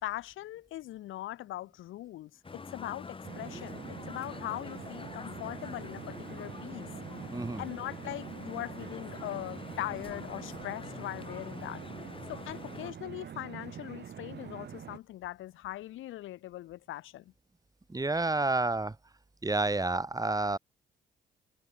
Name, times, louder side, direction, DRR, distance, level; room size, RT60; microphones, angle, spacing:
voice 1, 0.0-6.9 7.6-11.8 12.3-17.3, left 15 dB, 85° left, 1.9 m, -40 dB
sound 1, 2.4-12.9, left 4 dB, 25° left, 2.2 m, -45 dB
sound 2, 3.2-15.0, right 8 dB, 60° right, 6.2 m, -45 dB
voice 2, 7.3-7.6 17.9-18.9 19.4-20.6, right 2 dB, 20° right, 5.2 m, -29 dB
cardioid pair, 90°, 20 cm